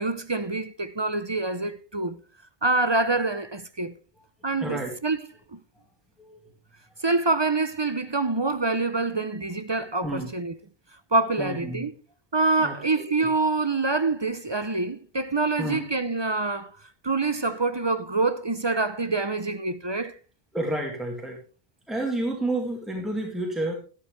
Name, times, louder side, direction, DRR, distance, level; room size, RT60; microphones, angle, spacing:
voice 1, 0.0-2.2 2.6-4.0 4.4-5.2 5.5-5.6 7.0-10.5 11.1-11.9 12.3-16.8 17.0-20.1, right 3 dB, 30° right, 0.6 m, -26 dB
voice 2, 4.6-4.9 6.2-6.4 10.0-10.3 11.4-11.8 12.6-13.3 15.6-15.8 20.5-21.4 21.9-23.7, right 1 dB, ahead, 2.2 m, -30 dB
12.5 x 11.5 x 3.3 m
omnidirectional pair, 1.0 m